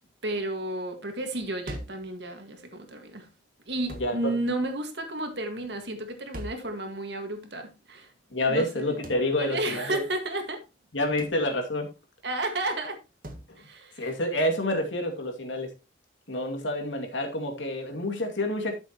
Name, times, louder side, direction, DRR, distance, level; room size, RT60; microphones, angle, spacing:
voice 1, 0.2-3.3 3.7-8.1 8.5-9.0 9.4-10.6 12.2-13.0 13.6-14.1, right 2 dB, 65° right, 1.9 m, -32 dB
sound 1, 1.7-2.1 3.9-4.2 6.3-6.7 9.0-9.3 11.2-11.4 13.2-13.5, equal, 50° right, 1.5 m, -39 dB
voice 2, 4.0-4.3 8.3-10.0 10.9-11.9 14.0-15.7 16.3-18.7, left 1 dB, 90° left, 2.4 m, -28 dB
12.5 x 7.0 x 3.0 m
head